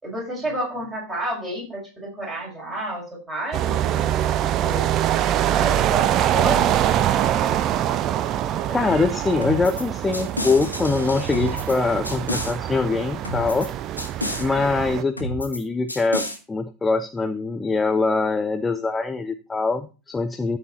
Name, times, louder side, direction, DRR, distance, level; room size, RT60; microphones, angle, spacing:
voice 1, 0.0-4.2 4.6-4.9 5.6-6.8, right 1 dB, 10° right, -3 dB, 6.4 m, -31 dB
sound 1, 3.5-15.0, right 11 dB, 35° right, 0.6 m, -24 dB
voice 2, 8.7-13.7 14.4-20.6, left 3 dB, 10° left, 10 dB, 0.5 m, -23 dB
sound 2, 9.4-9.8 10.1-11.8 12.0-12.5 13.2-13.7 14.0-14.4 15.2-15.6 15.9-16.4, left 1 dB, 85° left, 1.8 m, -30 dB
13.5 x 4.9 x 4.5 m, 0.33 s
figure-of-eight pair, 90°, 0 cm